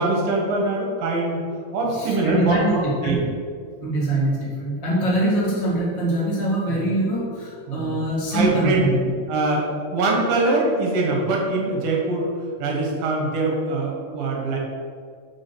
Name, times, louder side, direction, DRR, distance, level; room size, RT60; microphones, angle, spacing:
voice 1, 0.0-1.4 1.7-3.2 5.3-5.4 6.7-6.9 7.7-8.0 8.3-8.9 9.3-12.3 12.6-14.6, right 2 dB, 65° right, -1 dB, 2.9 m, -23 dB
voice 2, 1.9-3.2 3.8-9.1, right 1 dB, 15° left, -6 dB, 1.1 m, -23 dB
6.6 x 6.2 x 6.2 m, 2.2 s
omnidirectional pair, 4.9 m